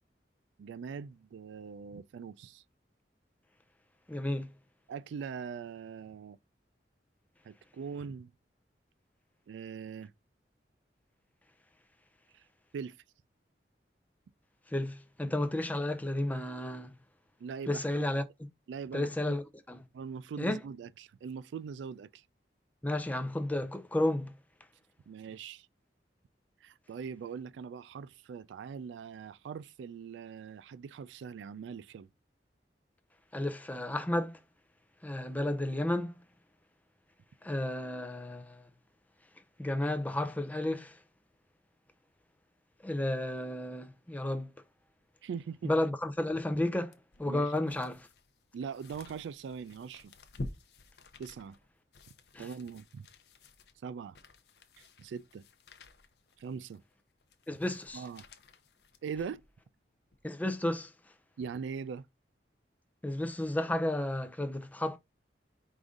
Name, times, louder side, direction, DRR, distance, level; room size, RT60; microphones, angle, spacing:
voice 1, 0.6-2.6 4.9-6.4 7.4-8.3 9.5-10.1 12.3-12.4 12.7-13.0 17.4-18.0 18.7-19.4 19.9-22.2 25.1-25.7 26.6-32.1 45.2-45.7 47.3-47.5 48.5-50.1 51.2-51.6 52.4-53.1 53.8-54.2 54.8-55.4 56.4-56.8 57.9-58.3 59.0-59.4 61.4-62.1, right 6 dB, 90° right, 0.3 m, -41 dB
voice 2, 4.1-4.5 14.7-17.0 17.7-18.2 18.9-19.8 20.4-20.6 22.8-24.3 33.3-34.4 35.0-36.2 37.4-38.7 39.6-41.0 42.8-44.5 45.6-48.1 52.3-52.5 57.5-58.0 60.2-60.9 63.0-65.0, left 1 dB, 10° left, 0.4 m, -32 dB
sound 1, 46.9-59.6 60.1-60.2, left 2 dB, 65° left, 0.6 m, -50 dB
4.9 x 2.6 x 3.6 m
head